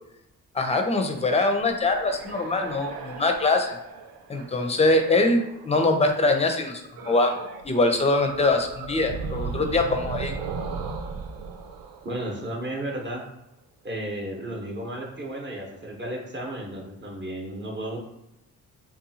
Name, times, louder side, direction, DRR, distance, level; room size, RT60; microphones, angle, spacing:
voice 1, 0.5-3.8 4.3-7.4 7.6-10.3, left 2 dB, 15° left, 5 dB, 0.5 m, -23 dB
sound 1, 1.7-5.8 6.9-7.7 8.0-12.9, right 5 dB, 65° right, 0.5 m, -36 dB
voice 2, 12.0-13.2 13.8-18.0, right 1 dB, 30° right, -1 dB, 0.9 m, -33 dB
2.7 x 2.3 x 2.7 m, 0.86 s
supercardioid pair, 55°, 38 cm